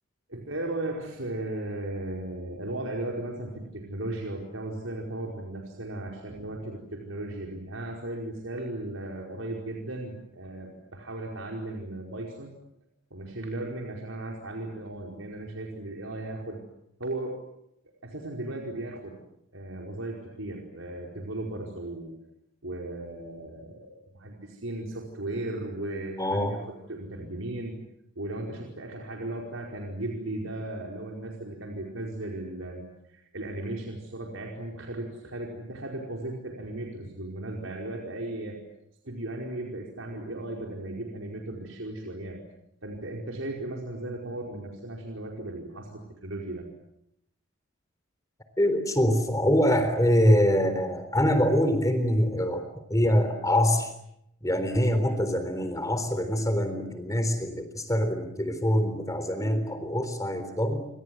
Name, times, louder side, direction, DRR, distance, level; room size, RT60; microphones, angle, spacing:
voice 1, 0.3-12.5 13.1-16.6 17.0-17.4 18.0-19.2 19.5-22.1 22.6-27.8 28.1-38.6 39.0-42.4 42.8-46.7, right 1 dB, 85° right, 0 dB, 4.9 m, -36 dB
voice 2, 26.2-26.6 48.6-53.9 54.4-60.8, equal, 15° left, 9 dB, 3.7 m, -24 dB
29.0 x 25.5 x 7.8 m, 0.78 s
head